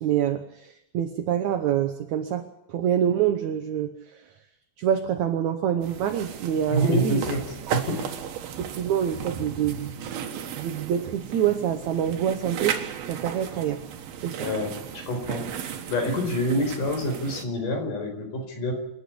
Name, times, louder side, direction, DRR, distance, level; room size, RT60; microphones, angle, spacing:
voice 1, 0.0-3.9 4.8-7.2 8.6-9.9 10.6-13.8 14.2-14.5, right 9 dB, 65° right, 5 dB, 2.1 m, -26 dB
sound 1, 5.8-17.4, right 8 dB, 90° right, 3.4 m, -35 dB
voice 2, 6.7-7.4 7.7-8.1 14.4-15.5 15.9-18.7, equal, 60° left, 3 dB, 6.1 m, -27 dB
28.0 x 9.9 x 9.9 m, 0.81 s
omnidirectional pair, 4.2 m